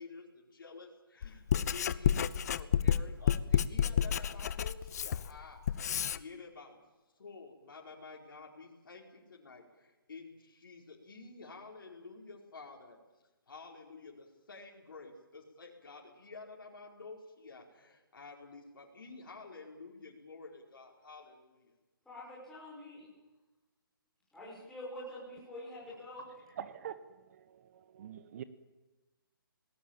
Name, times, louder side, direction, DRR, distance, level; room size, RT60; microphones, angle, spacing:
voice 1, 0.0-6.8 7.2-13.0 13.5-21.8, left 4 dB, 65° left, -2 dB, 5.1 m, -50 dB
Writing, 1.2-6.2, left 8 dB, 45° left, 0.8 m, -30 dB
voice 2, 22.0-23.1 24.3-26.6, left 1 dB, 5° left, -7 dB, 6.4 m, -46 dB
voice 3, 26.6-27.0 27.5-27.6 27.9-28.4, right 9 dB, 40° right, 13 dB, 1.2 m, -43 dB
29.5 x 19.5 x 7.4 m, 1.1 s
figure-of-eight pair, 145°, 12 cm